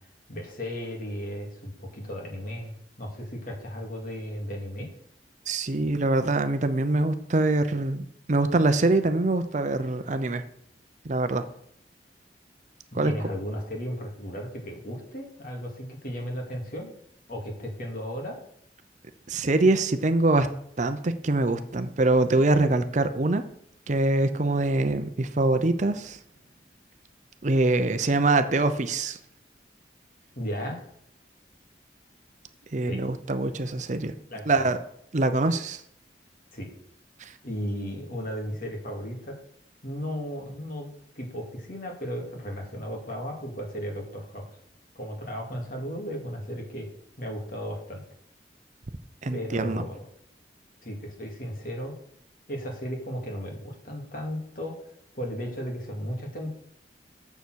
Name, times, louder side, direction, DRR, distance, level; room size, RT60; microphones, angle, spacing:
voice 1, 0.3-2.7 3.0-4.9 13.0-16.9 17.3-18.4 30.4-30.9 32.8-33.0 34.3-34.7 36.5-36.7 37.4-39.4 39.8-44.4 45.0-46.9 47.2-48.0 49.3-50.0 50.8-51.9 52.5-54.8 55.1-56.5, equal, 50° left, 0 dB, 2.4 m, -35 dB
voice 2, 5.5-8.0 8.3-10.4 11.0-11.4 12.9-13.1 19.3-20.5 20.8-23.4 23.9-26.2 27.4-29.2 32.7-34.1 34.5-34.8 35.1-35.8 37.2-37.3 49.2-49.8, right 2 dB, 45° right, 9 dB, 0.6 m, -24 dB
7.0 x 7.0 x 6.3 m, 0.70 s
head